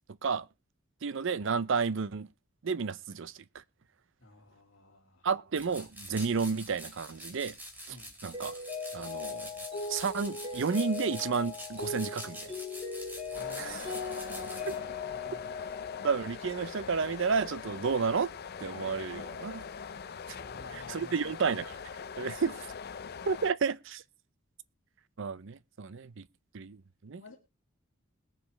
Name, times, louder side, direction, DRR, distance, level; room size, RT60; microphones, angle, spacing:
voice 1, 1.0-2.3 2.6-3.3 5.2-7.5 7.9-8.0 8.2-8.6 8.9-9.5 9.9-12.5 13.6-13.8 16.0-18.3 18.6-19.7 20.7-21.7 22.2-22.5 23.3-24.0 25.2-26.3 26.5-27.2, right 5 dB, 65° right, 0.6 m, -31 dB
voice 2, 4.2-5.3 7.9-8.1 13.3-15.7 20.3-21.4 22.2-22.3 27.2-27.4, left 2 dB, 70° left, 2.1 m, -50 dB
sound 1, 5.5-14.8, equal, 10° right, 2.6 m, -46 dB
Mallet percussion, 8.3-16.5, left 4 dB, 25° right, 7.3 m, -39 dB
sound 2, 13.3-23.5, left 6 dB, 50° left, 0.5 m, -42 dB
21.0 x 7.1 x 3.2 m
head